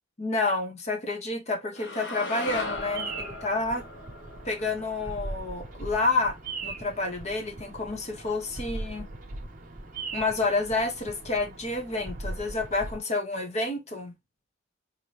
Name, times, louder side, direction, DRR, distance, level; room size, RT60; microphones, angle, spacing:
voice 1, 0.2-3.9 4.4-6.4 6.6-9.1 10.1-14.1, left 3 dB, 35° left, 1.0 m, -29 dB
sound 1, 1.8-6.0, left 2 dB, 70° left, 1.2 m, -38 dB
Bird vocalization bird call bird song, 2.5-13.0, right 2 dB, 45° right, 0.9 m, -40 dB
4.3 x 2.7 x 3.3 m
head